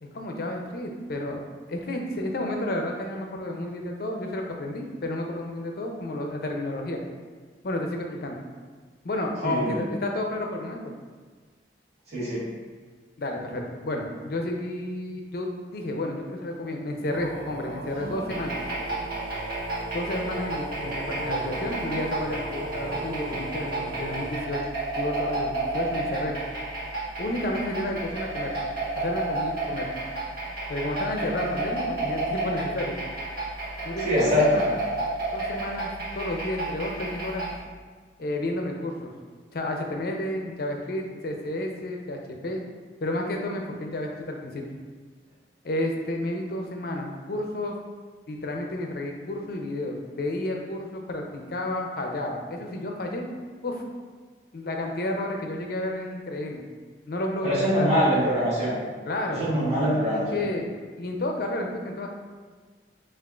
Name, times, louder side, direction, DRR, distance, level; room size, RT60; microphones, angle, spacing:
voice 1, 0.0-7.0 7.6-8.4 9.0-10.9 13.2-18.6 19.9-24.7 25.0-26.4 27.2-28.5 29.0-29.9 30.7-33.0 33.8-34.8 35.3-37.5 38.2-39.1 39.5-42.6 43.0-44.8 45.6-47.7 48.3-53.3 53.6-53.8 54.5-56.6 57.1-57.9 59.1-59.6 60.1-60.7 61.0-62.1, left 1 dB, 60° left, 2 dB, 0.5 m, -31 dB
voice 2, 9.4-9.8 12.1-12.5 34.0-34.6 57.4-58.8 59.4-60.5, equal, 40° right, -9 dB, 1.4 m, -23 dB
sound 1, 17.1-24.3, right 2 dB, 85° right, 0.6 m, -36 dB
sound 2, 18.3-37.6, right 2 dB, 55° right, 1.0 m, -32 dB
6.0 x 2.5 x 2.4 m, 1.5 s
head